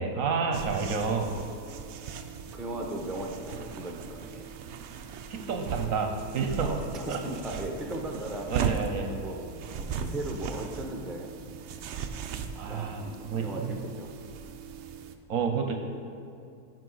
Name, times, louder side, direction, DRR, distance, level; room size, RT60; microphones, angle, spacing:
voice 1, 0.0-1.3 5.3-6.7 7.1-7.2 8.5-9.1 12.6-13.7 15.3-15.8, right 5 dB, 65° right, 4 dB, 0.9 m, -30 dB
sound 1, 0.5-15.1, right 6 dB, 85° right, 0.6 m, -38 dB
voice 2, 2.5-4.5 6.6-8.7 9.0-9.4 9.7-11.3 12.6-14.1, right 1 dB, ahead, 0 dB, 0.4 m, -37 dB
12.5 x 5.8 x 3.9 m, 2.5 s
omnidirectional pair, 1.8 m